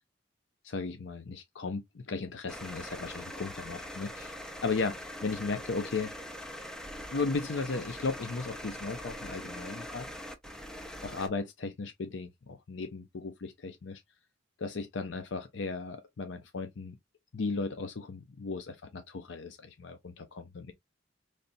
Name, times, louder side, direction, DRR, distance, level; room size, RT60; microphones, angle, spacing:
voice 1, 0.6-4.3 4.6-6.1 7.1-10.1 11.0-14.0 14.6-17.0 17.3-20.7, left 4 dB, 75° left, 0.6 m, -36 dB
sound 1, 2.5-11.3, equal, 5° left, 0.6 m, -42 dB
4.0 x 3.3 x 2.6 m
head